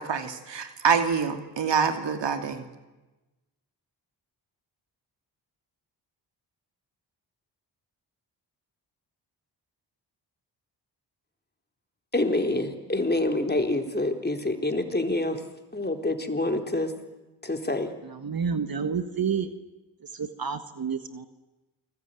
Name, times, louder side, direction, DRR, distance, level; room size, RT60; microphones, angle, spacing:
voice 1, 0.0-2.6, right 6 dB, 70° right, 7 dB, 2.6 m, -26 dB
voice 2, 12.1-15.4 15.7-16.9 17.4-17.9, left 2 dB, 20° left, 5 dB, 3.9 m, -26 dB
voice 3, 18.0-19.5 20.1-21.3, right 6 dB, 50° right, 10 dB, 1.7 m, -29 dB
28.5 x 20.0 x 9.2 m, 1.1 s
supercardioid pair, 45°, 44 cm